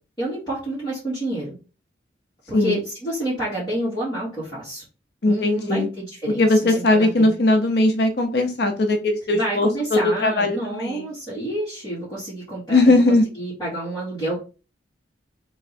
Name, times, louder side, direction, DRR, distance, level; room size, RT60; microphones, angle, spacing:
voice 1, 0.2-1.5 2.5-4.8 5.2-7.4 9.3-12.9 13.4-14.4, right 1 dB, 20° left, -11 dB, 2.4 m, -29 dB
voice 2, 5.2-5.9 6.3-11.1 12.7-13.2, left 2 dB, 60° left, 6 dB, 0.6 m, -19 dB
3.7 x 3.1 x 4.2 m, 0.33 s
head